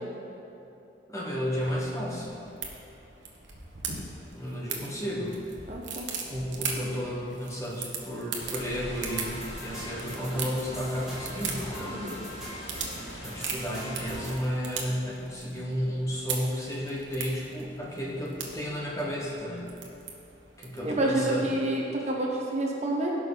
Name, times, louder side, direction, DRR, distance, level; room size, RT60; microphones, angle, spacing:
voice 1, 1.1-2.4 4.3-5.4 6.3-12.0 13.2-19.7 20.6-21.5, equal, 15° left, -3 dB, 1.3 m, -32 dB
sound 1, 1.6-21.0, right 5 dB, 85° right, 1.3 m, -40 dB
voice 2, 5.7-6.1 11.9-12.2 20.8-23.1, right 1 dB, 35° right, -2 dB, 1.1 m, -28 dB
sound 2, 8.4-14.4, equal, 75° left, 1.9 m, -42 dB
sound 3, 9.1-14.4, equal, 5° right, 2.6 m, -43 dB
16.0 x 6.0 x 4.0 m, 2.8 s
head